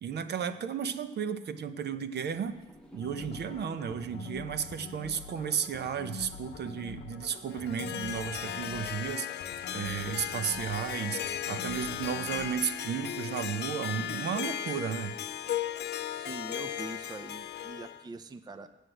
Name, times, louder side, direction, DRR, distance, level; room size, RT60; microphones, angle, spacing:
voice 1, 0.0-2.6 2.9-9.3 9.7-15.1, right 7 dB, 55° right, 10 dB, 0.7 m, -34 dB
sound 1, 2.1-8.9, equal, 5° left, 1.0 m, -56 dB
sound 2, 3.0-12.5, left 5 dB, 85° left, 0.8 m, -46 dB
Harp, 7.5-18.0, left 11 dB, 60° left, 0.6 m, -36 dB
voice 2, 16.1-18.7, right 3 dB, 20° right, 9 dB, 0.5 m, -43 dB
8.2 x 6.3 x 8.0 m, 1.1 s
cardioid pair, 90°, 20 cm